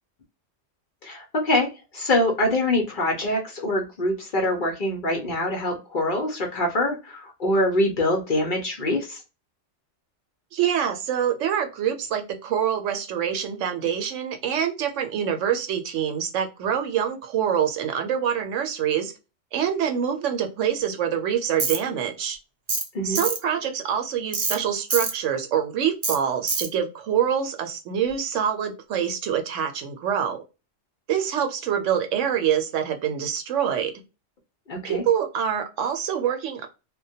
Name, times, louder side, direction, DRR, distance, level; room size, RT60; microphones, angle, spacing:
voice 1, 1.0-9.2 22.9-23.2 34.7-35.0, left 1 dB, 50° left, 1 dB, 0.7 m, -24 dB
voice 2, 10.5-19.1 19.5-22.4 23.0-30.4 31.1-33.9 34.8-36.7, right 8 dB, 75° right, 6 dB, 0.9 m, -25 dB
Tools, 21.6-21.8 22.7-22.9 23.1-23.4 24.3-24.6 24.9-25.1 26.0-26.2 26.5-26.7, right 4 dB, 45° right, 0.4 m, -25 dB
2.2 x 2.2 x 2.6 m, 0.29 s
omnidirectional pair, 1.3 m